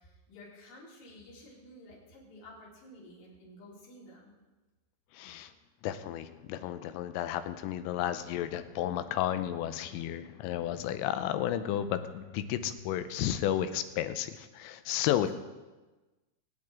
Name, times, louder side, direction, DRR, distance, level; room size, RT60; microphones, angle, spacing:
voice 1, 0.0-4.3 15.1-15.3, left 1 dB, 65° left, -6 dB, 6.0 m, -52 dB
voice 2, 5.1-5.5 5.8-15.3, left 11 dB, 90° left, 10 dB, 3.2 m, -32 dB
24.0 x 9.3 x 3.6 m, 1.2 s
omnidirectional pair, 5.9 m